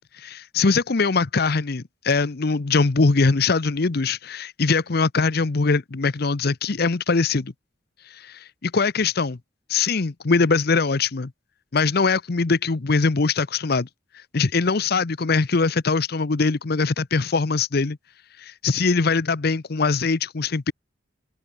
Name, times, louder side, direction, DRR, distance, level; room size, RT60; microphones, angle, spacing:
voice 1, 0.2-7.5 8.2-9.4 9.7-11.3 11.7-13.9 14.3-18.0 18.4-20.7, left 4 dB, 50° left, 0.7 m, -22 dB
open air
head